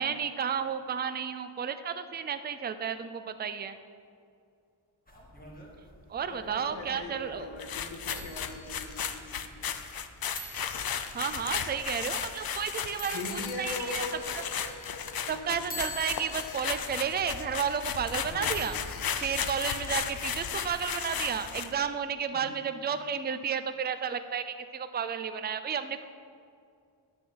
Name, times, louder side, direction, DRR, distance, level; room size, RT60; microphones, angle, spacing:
voice 1, 0.0-3.8 6.1-7.5 8.1-8.3 11.1-14.0 14.3-14.4 15.3-18.8 19.2-26.1, right 7 dB, 25° right, 10 dB, 0.4 m, -32 dB
sound 1, 5.1-20.4, left 1 dB, 20° left, 1.6 m, -48 dB
voice 2, 6.3-9.3 13.1-14.1 15.3-15.5 18.3-18.5 22.3-22.5, left 2 dB, 90° left, 2 dB, 1.7 m, -40 dB
sound 2, 7.6-21.8, left 7 dB, 55° left, 0.6 m, -35 dB
9.8 x 6.2 x 7.9 m, 2.4 s
wide cardioid pair, 165°, 44 cm